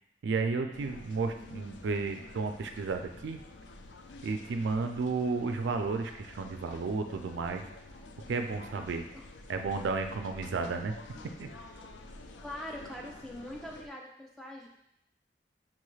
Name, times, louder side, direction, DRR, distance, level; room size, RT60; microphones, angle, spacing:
voice 1, 0.2-3.4 4.2-7.6 8.3-9.0 9.5-10.9 11.4-11.5, right 4 dB, 85° right, 6 dB, 0.4 m, -32 dB
sound 1, 0.7-13.9, left 2 dB, 85° left, 0.4 m, -49 dB
voice 2, 12.4-14.7, left 1 dB, 5° left, -2 dB, 0.4 m, -42 dB
5.9 x 2.3 x 3.1 m, 0.78 s
head